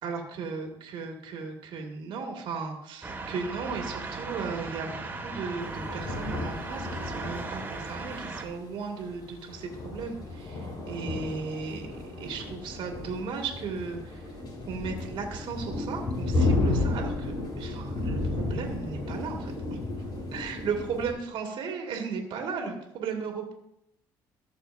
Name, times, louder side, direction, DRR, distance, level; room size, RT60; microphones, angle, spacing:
voice 1, 0.0-14.3 14.7-19.8 20.3-23.5, right 5 dB, 65° right, 2 dB, 1.9 m, -36 dB
sound 1, 3.0-8.5, right 3 dB, 20° right, 1.8 m, -37 dB
sound 2, 5.6-21.1, left 2 dB, 50° left, 4.0 m, -33 dB
15.0 x 6.5 x 2.6 m, 0.78 s
supercardioid pair, 75°, 9 cm